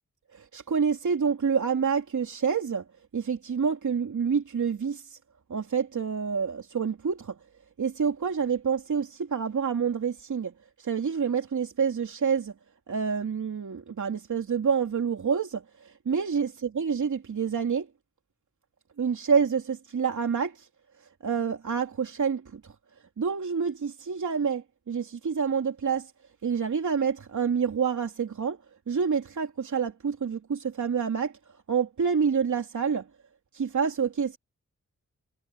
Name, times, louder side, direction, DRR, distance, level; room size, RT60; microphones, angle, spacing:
voice 1, 0.3-2.8 3.1-5.2 5.5-7.4 7.8-10.5 10.8-12.5 12.9-17.9 19.0-20.7 21.2-22.7 23.2-26.1 26.4-28.6 28.9-31.3 31.7-33.1 33.5-34.4, right 6 dB, 75° right, 3.1 m, -27 dB
wide cardioid pair, 115°, 30 cm